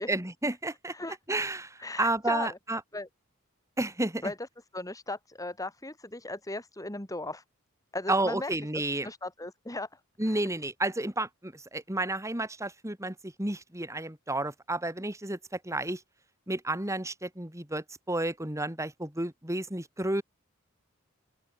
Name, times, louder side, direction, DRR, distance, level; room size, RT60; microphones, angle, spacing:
voice 1, 0.1-0.9 1.3-2.8 3.8-4.3 8.1-9.1 10.2-16.0 16.5-20.2, right 2 dB, 15° right, 2.5 m, -31 dB
voice 2, 1.8-2.5 2.9-3.1 4.2-4.3 4.7-7.4 7.9-8.5 9.0-9.9 10.2-10.4, left 2 dB, 15° left, 2.8 m, -37 dB
open air
head